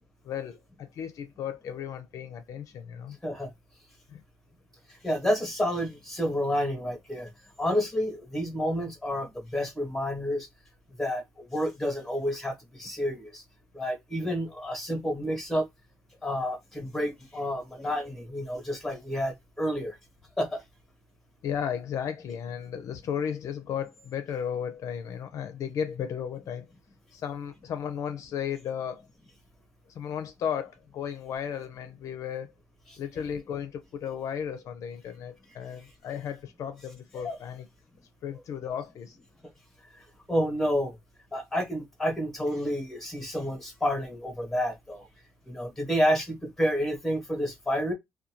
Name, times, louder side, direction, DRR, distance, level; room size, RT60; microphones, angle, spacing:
voice 1, 0.2-3.2 4.1-4.2 21.4-26.7 27.1-29.0 30.0-32.5 33.0-37.7 38.2-39.2, left 8 dB, 65° left, 0.4 m, -34 dB
voice 2, 5.0-7.3 7.6-10.5 11.0-13.4 13.7-15.7 16.2-20.0 20.4-20.6 37.1-37.4 40.0-40.9 41.3-45.0 45.5-47.9, equal, 5° left, 1.1 m, -29 dB
2.5 x 2.2 x 2.8 m
cardioid pair, 135°, 6 cm